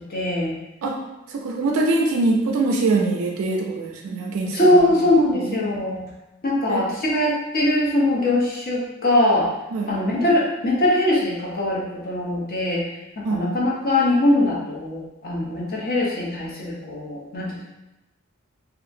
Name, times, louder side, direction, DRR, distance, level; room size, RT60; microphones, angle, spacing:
voice 1, 0.1-0.6 4.5-6.1 6.4-9.5 9.9-12.8 13.2-17.7, left 1 dB, 45° left, -4 dB, 0.7 m, -21 dB
voice 2, 1.3-4.8 5.3-5.6 6.7-6.8 9.7-9.9 13.2-13.6, right 3 dB, 70° right, 0 dB, 0.4 m, -23 dB
2.7 x 2.4 x 2.5 m, 0.96 s
head